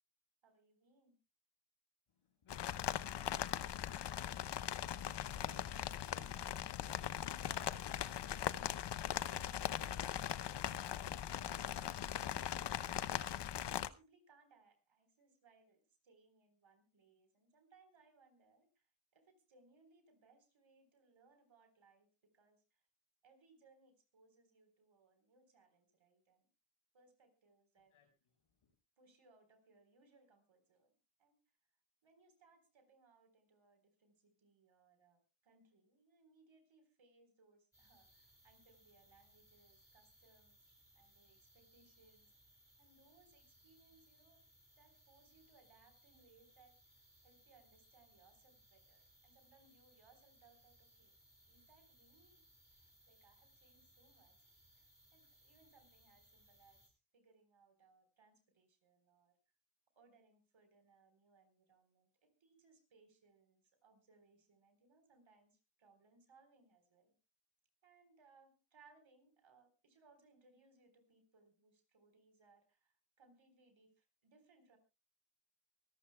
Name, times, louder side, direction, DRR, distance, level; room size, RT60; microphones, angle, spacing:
voice 1, 0.4-1.2 5.1-8.6 9.3-10.5 11.1-11.3 11.5-13.4 13.7-22.8 23.2-26.5 26.9-28.1 29.0-30.9 31.2-31.4 32.0-42.3 42.8-44.5 44.8-51.2 51.5-52.5 52.7-59.4 60.0-67.1 67.8-74.8, right 4 dB, 65° right, 8 dB, 4.1 m, -70 dB
voice 2, 2.1-3.8 27.9-28.3 28.6-28.7, left 5 dB, 85° left, 5 dB, 5.3 m, -68 dB
sound 1, 2.5-13.9, left 10 dB, 55° left, 0.7 m, -40 dB
sound 2, 37.7-56.9, right 1 dB, 5° right, 7.8 m, -68 dB
24.0 x 13.5 x 2.2 m, 0.28 s
cardioid pair, 75°, 49 cm